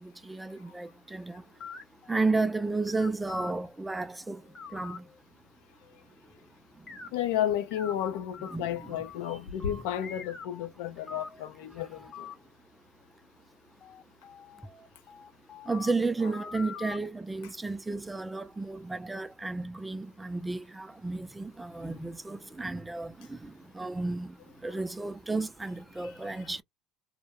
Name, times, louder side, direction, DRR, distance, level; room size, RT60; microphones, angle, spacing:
voice 1, 0.0-1.4 2.1-4.4 4.7-5.0 8.5-9.0 15.7-24.3 24.6-26.6, right 3 dB, 10° right, 0.3 m, -32 dB
sound 1, 1.3-3.5 4.3-5.2 5.8-6.4 6.9-7.1 7.7-9.2 9.6-10.7 11.1-11.5 11.9-12.3 13.8-17.0, left 6 dB, 40° left, 1.0 m, -45 dB
voice 2, 7.1-12.3 24.7-24.8 26.0-26.1, left 10 dB, 85° left, 0.5 m, -32 dB
2.2 x 2.1 x 2.9 m
supercardioid pair, 110°, 0 cm